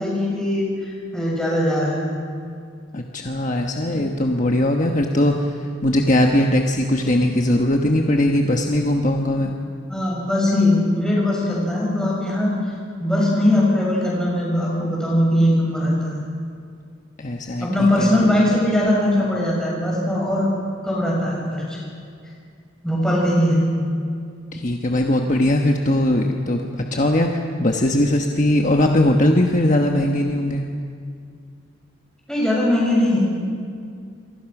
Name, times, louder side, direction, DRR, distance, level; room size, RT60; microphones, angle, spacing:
voice 1, 0.0-2.1 3.9-4.0 9.9-12.6 13.0-16.1 17.6-20.5 20.8-21.8 22.8-23.7 32.3-33.2, left 1 dB, 5° left, -5 dB, 7.0 m, -20 dB
voice 2, 2.9-9.5 17.2-18.1 24.5-30.6, left 1 dB, 40° left, 2 dB, 1.3 m, -20 dB
27.5 x 24.0 x 6.1 m, 2.3 s
head